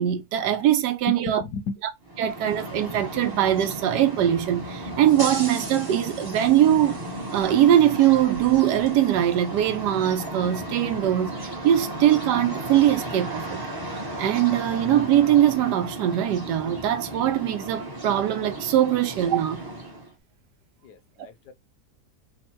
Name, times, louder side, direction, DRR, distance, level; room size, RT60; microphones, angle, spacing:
voice 1, 0.0-1.4 2.2-7.0 7.3-13.6 14.2-19.6, right 11 dB, 85° right, 1.2 m, -21 dB
voice 2, 1.1-1.8 20.8-21.5, left 5 dB, 75° left, 1.2 m, -34 dB
sound 1, 2.0-20.1, right 1 dB, 20° right, 0.7 m, -34 dB
3.5 x 2.1 x 4.3 m
omnidirectional pair, 1.8 m